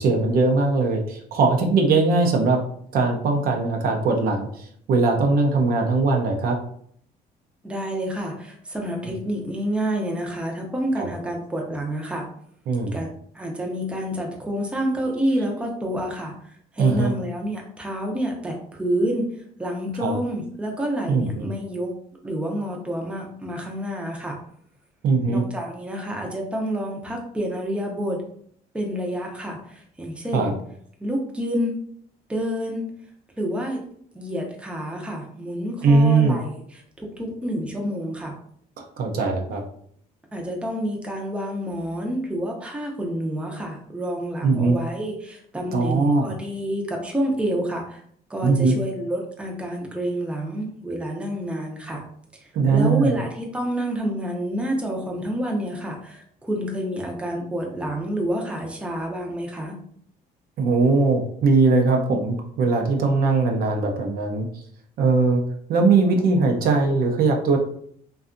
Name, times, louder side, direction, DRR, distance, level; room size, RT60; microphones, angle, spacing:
voice 1, 0.0-2.6 2.9-6.6 9.0-9.1 11.0-11.1 12.7-13.0 16.8-17.1 20.0-20.2 21.1-21.5 25.0-25.4 30.3-30.5 35.8-36.4 38.8-39.6 44.4-44.8 45.7-46.3 48.4-48.8 52.5-53.2 60.6-64.5 65.0-65.4 65.7-67.6, right 3 dB, 60° right, 3 dB, 0.6 m, -20 dB
voice 2, 7.6-12.3 12.9-19.3 19.6-21.9 22.2-24.4 25.3-28.2 28.7-30.5 31.0-31.8 32.3-32.9 33.4-33.8 34.1-38.4 40.3-48.0 48.3-52.0 52.3-59.7, equal, 5° right, 1 dB, 0.5 m, -28 dB
2.6 x 2.3 x 2.5 m, 0.63 s
cardioid pair, 110°, 17 cm